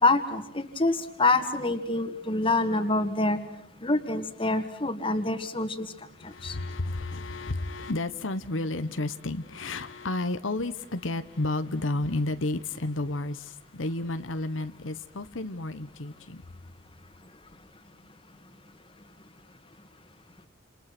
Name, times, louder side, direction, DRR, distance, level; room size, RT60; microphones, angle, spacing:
voice 1, 0.0-3.4 3.8-5.9 6.2-6.6, left 2 dB, 25° left, 2.1 m, -26 dB
voice 2, 6.2-16.4, left 2 dB, 80° left, 1.1 m, -31 dB
29.5 x 28.0 x 6.1 m
head